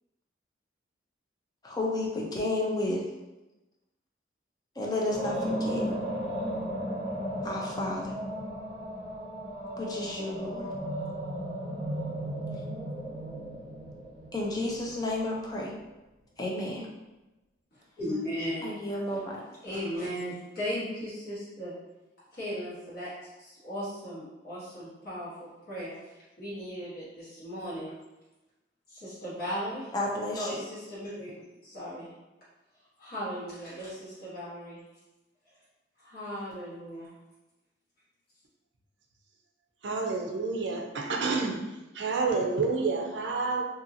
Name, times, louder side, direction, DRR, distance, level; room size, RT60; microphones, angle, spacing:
voice 1, 1.6-3.0 4.8-5.8 7.4-8.1 9.8-10.7 14.3-15.7 16.4-16.9 18.6-19.4 29.9-30.6, left 2 dB, 20° left, 0.4 m, -31 dB
sound 1, 5.1-15.2, equal, 40° right, 0.8 m, -35 dB
voice 2, 18.0-18.7 19.2-19.3 19.6-21.7 22.3-23.1 23.4-26.0 26.4-27.9 28.9-29.9 30.3-32.1 33.0-34.8 36.0-37.1, equal, 55° left, 1.3 m, -37 dB
voice 3, 39.8-41.6 41.9-43.6, right 4 dB, 70° right, 0.4 m, -29 dB
2.7 x 2.7 x 2.6 m
head